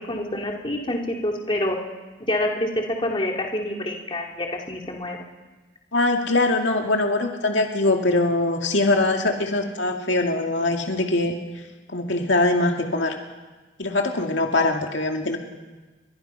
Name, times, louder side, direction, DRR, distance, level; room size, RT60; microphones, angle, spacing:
voice 1, 0.1-1.8 2.2-5.3, left 1 dB, 25° left, 0 dB, 2.8 m, -27 dB
voice 2, 5.9-11.4 11.9-13.2 13.8-15.4, left 2 dB, 70° left, 2 dB, 2.3 m, -22 dB
30.0 x 23.5 x 5.7 m, 1.2 s
head